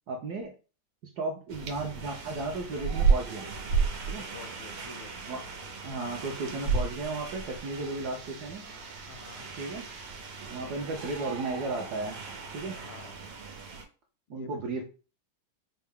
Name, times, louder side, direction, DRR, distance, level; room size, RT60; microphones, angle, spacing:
voice 1, 0.1-0.5 1.0-3.5 4.1-4.2 5.3-5.5 5.8-8.6 9.6-9.9 10.5-12.2 12.5-12.8 14.3-14.8, right 3 dB, 70° right, 1 dB, 0.9 m, -34 dB
sound 1, 1.5-13.8, right 5 dB, 85° right, 1.7 m, -33 dB
voice 2, 4.0-5.1 9.1-9.5 10.6-11.2 12.8-13.2 14.3-14.8, left 5 dB, 80° left, 8 dB, 1.5 m, -48 dB
5.5 x 2.0 x 3.5 m, 0.35 s
omnidirectional pair, 2.4 m